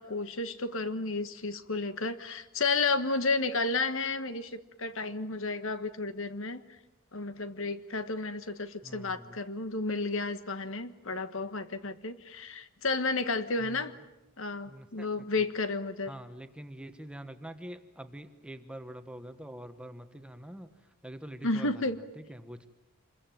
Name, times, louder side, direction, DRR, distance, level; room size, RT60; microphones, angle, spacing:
voice 1, 0.0-6.6 7.1-13.9 14.4-16.1 21.4-22.0, left 3 dB, 60° left, 11 dB, 1.5 m, -32 dB
voice 2, 8.8-9.4 13.6-14.0 14.7-15.3 16.1-21.9 22.2-22.7, right 1 dB, 5° right, 8 dB, 1.2 m, -45 dB
26.5 x 22.0 x 9.2 m, 0.98 s
head